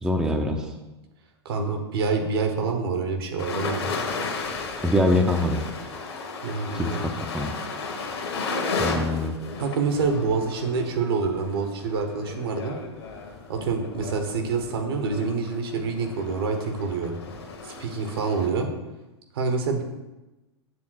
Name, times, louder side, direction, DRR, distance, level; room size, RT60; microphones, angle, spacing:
voice 1, 0.0-0.7 4.8-5.6 6.7-7.5 8.8-9.4, left 1 dB, 5° right, 3 dB, 0.6 m, -24 dB
voice 2, 1.4-3.8 6.4-7.1 9.6-12.8 13.5-17.2 17.6-18.7 19.3-19.8, right 4 dB, 60° right, 4 dB, 1.2 m, -26 dB
sound 1, 3.4-18.5, left 4 dB, 60° left, 1.4 m, -34 dB
7.5 x 3.7 x 6.2 m, 1.0 s
figure-of-eight pair, 95°, 15 cm